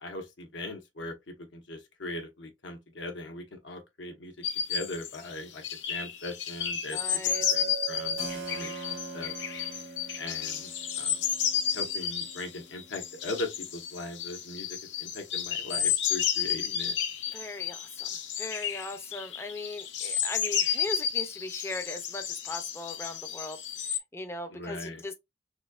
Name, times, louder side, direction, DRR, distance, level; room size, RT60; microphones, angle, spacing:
voice 1, 0.0-4.3 4.7-7.0 7.5-9.3 10.2-10.7 11.0-11.2 11.7-14.7 15.0-17.0 24.5-25.0, left 2 dB, 85° left, 1.1 m, -39 dB
sound 1, 4.4-24.0, left 8 dB, 70° left, 0.7 m, -32 dB
voice 2, 6.9-7.5 17.3-18.1 18.4-23.6 24.1-25.1, left 2 dB, 15° left, 0.4 m, -39 dB
Chink clink, 7.3-11.5, right 9 dB, 55° right, 0.6 m, -42 dB
Keyboard (musical), 8.2-13.7, right 1 dB, 85° right, 1.4 m, -46 dB
4.1 x 2.7 x 2.4 m
head